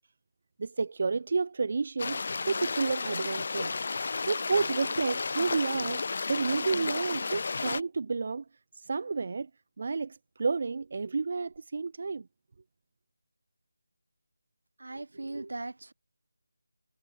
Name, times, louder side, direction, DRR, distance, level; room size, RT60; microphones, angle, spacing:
voice 1, 0.6-3.7 4.3-6.0 6.3-8.4 8.7-9.5 9.8-12.3, right 4 dB, 45° right, 1.4 m, -30 dB
sound 1, 2.0-7.8, left 4 dB, 45° left, 2.5 m, -32 dB
voice 2, 14.8-15.9, right 2 dB, 70° right, 5.9 m, -38 dB
figure-of-eight pair, 170°, 0 cm